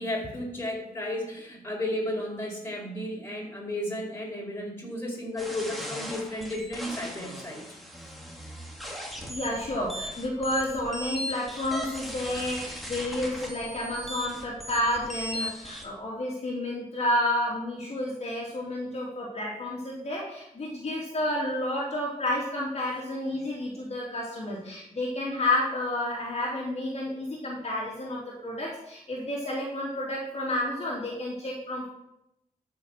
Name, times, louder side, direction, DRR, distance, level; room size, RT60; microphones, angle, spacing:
voice 1, 0.0-7.6, left 1 dB, 15° left, -2 dB, 4.7 m, -33 dB
sound 1, 5.4-15.8, equal, ahead, 2.7 m, -38 dB
voice 2, 9.3-31.9, left 1 dB, 45° left, -5 dB, 3.1 m, -30 dB
13.0 x 6.6 x 5.9 m, 0.82 s
wide cardioid pair, 105°, 15 cm